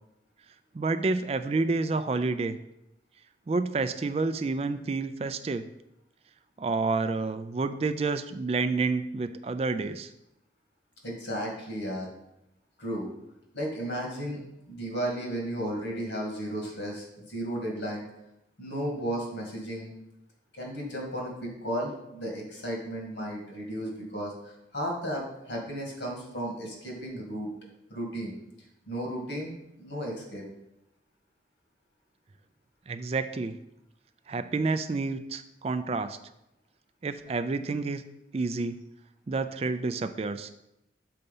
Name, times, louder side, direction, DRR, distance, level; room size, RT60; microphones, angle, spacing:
voice 1, 0.7-2.6 3.5-5.7 6.6-10.1 32.9-33.6 34.3-36.2 37.0-38.0 38.3-38.8 39.3-40.5, right 3 dB, 35° right, 11 dB, 0.3 m, -29 dB
voice 2, 11.0-12.1 12.8-13.1 13.5-14.4 14.7-18.0 18.6-19.9 20.6-27.5 27.9-28.3 28.9-30.4, equal, 80° left, -1 dB, 2.2 m, -34 dB
6.6 x 4.1 x 5.4 m, 0.86 s
head